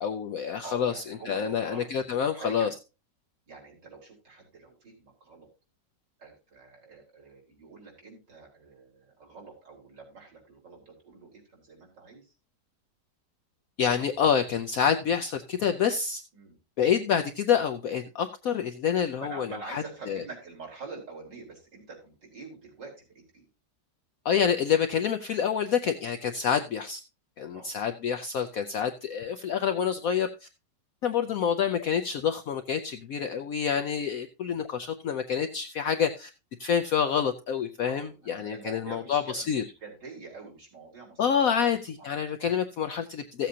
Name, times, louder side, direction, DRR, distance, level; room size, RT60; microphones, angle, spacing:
voice 1, 0.0-2.7 13.8-16.2 16.8-20.2 24.2-27.0 27.4-30.5 31.0-36.3 36.6-39.6 41.2-43.5, left 7 dB, 65° left, 6 dB, 0.9 m, -27 dB
voice 2, 0.6-2.7 3.5-5.5 6.2-12.3 16.3-16.6 19.1-23.5 27.5-27.7 37.9-41.7 42.0-42.1 42.4-42.5, right 4 dB, 80° right, -2 dB, 4.5 m, -46 dB
15.5 x 7.6 x 2.8 m, 0.29 s
omnidirectional pair, 1.9 m